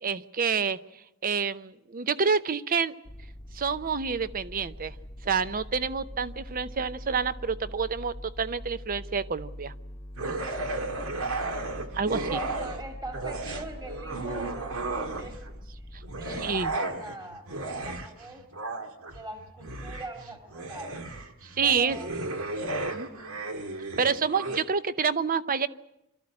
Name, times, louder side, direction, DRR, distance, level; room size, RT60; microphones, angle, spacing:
voice 1, 0.0-0.8 1.2-2.9 3.5-4.9 5.2-9.7 11.9-12.4 15.9-16.0 16.4-16.7 21.4-22.0 22.9-23.1 24.0-25.7, right 5 dB, 40° right, 14 dB, 0.7 m, -28 dB
sound 1, 3.0-16.8, equal, 15° left, 1.1 m, -43 dB
sound 2, 10.2-12.8 13.1-15.5 16.0-24.6, right 2 dB, 70° right, 1.8 m, -34 dB
voice 2, 12.1-17.5 17.7-18.4 19.1-21.0 21.6-22.1 23.0-23.4, right 2 dB, 20° right, 4 dB, 2.3 m, -42 dB
26.0 x 13.5 x 9.7 m, 0.87 s
head